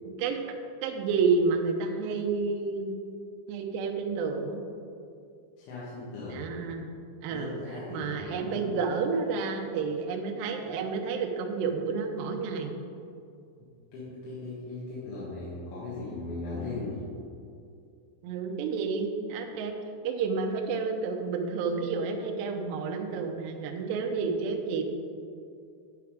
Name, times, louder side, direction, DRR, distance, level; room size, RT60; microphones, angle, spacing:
voice 1, 0.1-0.4 0.8-2.9 3.5-4.6 6.2-6.9 7.2-7.5 7.9-12.7 18.2-19.7 20.0-24.8, right 4 dB, 80° right, 3 dB, 2.5 m, -30 dB
voice 2, 5.6-6.5 7.3-8.7 13.6-17.0, left 3 dB, 70° left, -8 dB, 3.7 m, -38 dB
9.7 x 5.9 x 4.9 m, 2.5 s
omnidirectional pair, 5.7 m